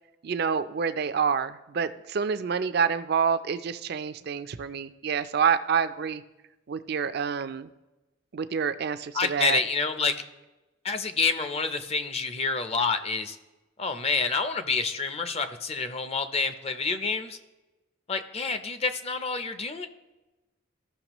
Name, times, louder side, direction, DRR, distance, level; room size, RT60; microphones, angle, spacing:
voice 1, 0.2-6.2 6.7-7.7 8.3-9.6, right 6 dB, 55° right, 12 dB, 0.4 m, -27 dB
voice 2, 9.1-10.2 10.8-13.4 13.8-17.4 18.1-19.9, left 4 dB, 30° left, 9 dB, 0.5 m, -28 dB
15.0 x 5.8 x 3.0 m, 1.1 s
head